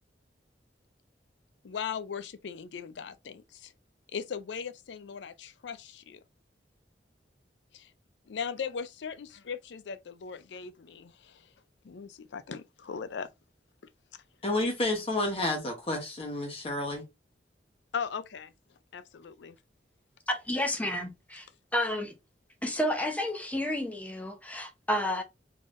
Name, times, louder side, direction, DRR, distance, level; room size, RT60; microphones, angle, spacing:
voice 1, 1.6-3.7 4.1-6.2 7.7-7.9 8.3-11.5 11.8-13.3 14.1-14.2 17.9-18.5 18.9-19.6, left 6 dB, 75° left, 0.4 m, -38 dB
voice 2, 14.4-17.0, left 2 dB, 35° left, 1.0 m, -30 dB
voice 3, 20.3-21.5 21.7-22.1 22.6-25.2, left 1 dB, 10° left, 0.7 m, -31 dB
3.7 x 3.3 x 2.5 m
head